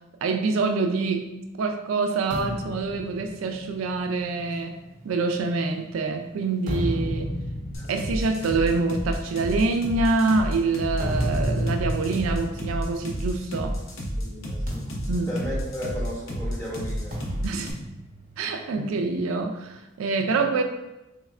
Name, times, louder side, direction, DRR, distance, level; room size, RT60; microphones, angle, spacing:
voice 1, 0.2-1.3 1.6-4.8 5.0-7.3 7.9-13.8 15.1-15.3 17.4-17.7 18.4-20.6, right 3 dB, 85° right, 5 dB, 0.4 m, -26 dB
sound 1, 2.3-5.9 6.4-13.8 14.1-14.3 14.7-16.3 17.1-18.9, equal, 40° right, 0.8 m, -33 dB
sound 2, 7.7-17.7, equal, 80° left, 0.7 m, -30 dB
voice 2, 14.2-14.9 15.3-17.2 18.8-18.9 20.2-20.3, equal, 15° left, -5 dB, 0.7 m, -35 dB
3.4 x 3.2 x 2.4 m, 0.99 s
head